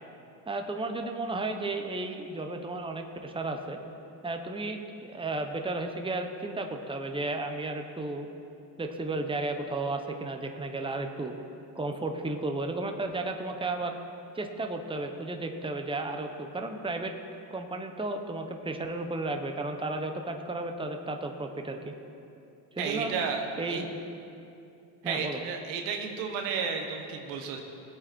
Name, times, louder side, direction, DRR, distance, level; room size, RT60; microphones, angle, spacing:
voice 1, 0.5-3.8 4.2-8.3 8.8-11.4 11.7-14.0 14.3-17.1 17.5-21.9 22.7-23.1 23.6-24.0 25.0-25.4, right 2 dB, 10° right, 4 dB, 1.1 m, -33 dB
voice 2, 22.8-23.8 25.0-27.6, right 5 dB, 90° right, 3 dB, 1.6 m, -32 dB
19.0 x 8.6 x 4.6 m, 2.7 s
supercardioid pair, 90°, 48 cm